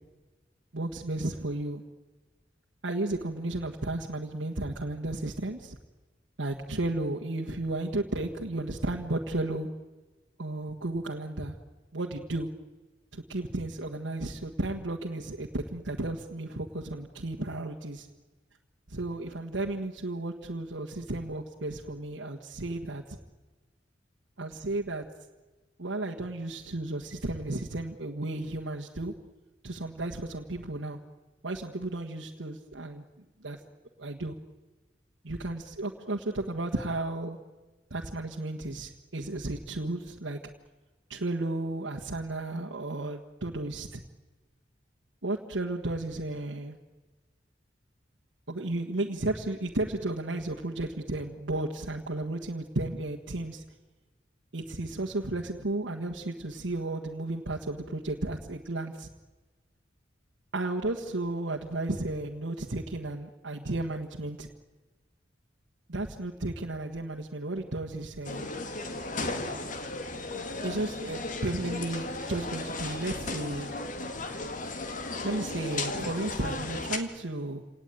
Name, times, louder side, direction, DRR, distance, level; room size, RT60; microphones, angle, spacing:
voice 1, 0.7-1.8 2.8-5.8 6.4-9.7 10.4-11.5 11.9-12.5 13.1-18.1 18.9-23.2 24.4-25.1 25.8-29.1 29.6-31.0 31.4-33.0 33.4-33.6 34.0-34.4 35.2-37.4 37.9-40.4 41.1-44.0 45.2-46.8 48.5-53.6 54.5-59.1 60.5-64.5 65.9-68.5 70.6-73.7 75.2-77.6, right 2 dB, 85° right, 0 dB, 1.6 m, -33 dB
sound 1, 68.2-77.0, left 2 dB, 45° left, 2.0 m, -35 dB
27.5 x 18.5 x 9.2 m, 1.3 s
head